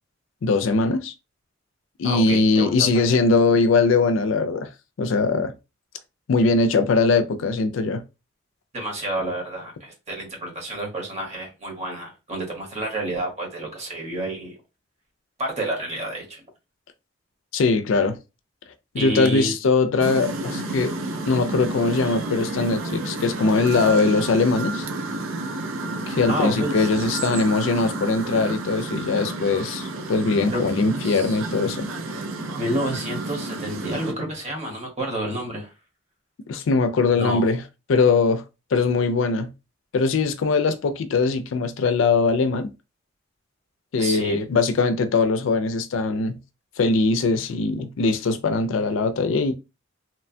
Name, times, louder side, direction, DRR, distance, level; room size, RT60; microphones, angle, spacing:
voice 1, 0.4-1.1 2.0-4.7 5.0-5.5 6.3-8.0 17.5-18.2 18.9-20.9 21.3-24.9 26.1-31.9 36.5-37.6 37.9-38.4 38.7-39.5 39.9-42.7 43.9-46.4 46.8-49.5, left 4 dB, 70° left, 0.4 m, -21 dB
voice 2, 2.0-2.9 8.7-14.5 15.4-16.4 18.9-19.5 26.3-27.0 30.5-31.4 32.6-35.7 37.1-37.5 44.0-44.4, right 1 dB, 35° right, 1.1 m, -29 dB
sound 1, 20.0-34.1, right 2 dB, 85° right, 0.6 m, -31 dB
2.9 x 2.2 x 2.6 m
head